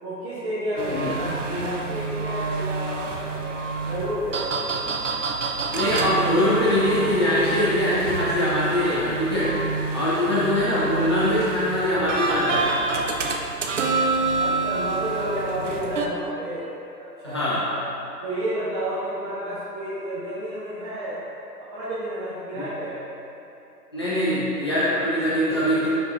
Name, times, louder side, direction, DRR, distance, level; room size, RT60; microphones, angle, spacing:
voice 1, 0.0-3.6 3.8-4.5 14.4-16.7 17.0-17.8 18.2-21.2 21.7-23.0, right 1 dB, 25° right, -14 dB, 1.2 m, -30 dB
sound 1, 0.8-16.1, right 3 dB, 50° right, 0.6 m, -28 dB
voice 2, 5.7-9.5 9.9-12.7 17.2-17.6 22.6-22.7 23.9-25.9, left 1 dB, 15° left, -11 dB, 0.6 m, -22 dB
9.5 x 4.2 x 2.7 m, 2.8 s
figure-of-eight pair, 135°, 48 cm